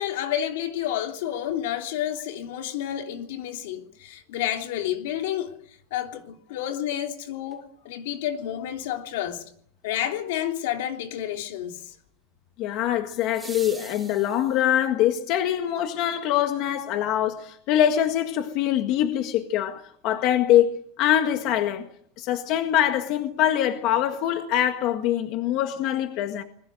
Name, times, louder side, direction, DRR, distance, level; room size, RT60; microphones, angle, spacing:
voice 1, 0.0-5.6 5.9-9.4 9.8-11.9, left 11 dB, 75° left, 3.2 m, -30 dB
sound 1, 7.5-7.6 13.1-14.9 17.1-17.2, right 3 dB, 5° right, 2.8 m, -44 dB
voice 2, 12.6-21.9 22.2-26.4, left 11 dB, 45° left, 1.7 m, -24 dB
29.0 x 21.0 x 6.5 m
supercardioid pair, 175°, 0 cm